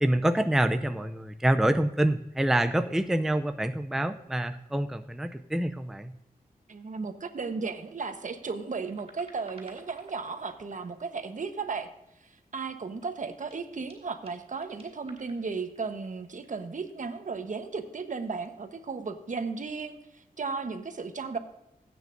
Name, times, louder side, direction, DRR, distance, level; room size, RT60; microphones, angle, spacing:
voice 1, 0.0-6.1, right 1 dB, 5° right, 8 dB, 0.5 m, -26 dB
voice 2, 6.7-11.9 12.5-20.0 20.4-21.4, right 4 dB, 55° right, 7 dB, 1.2 m, -35 dB
sound 1, 8.5-11.4 12.0-12.7 13.0-17.5 18.3-18.5, right 3 dB, 40° right, 3.8 m, -55 dB
16.5 x 9.1 x 2.7 m, 0.88 s
wide cardioid pair, 90°, 15 cm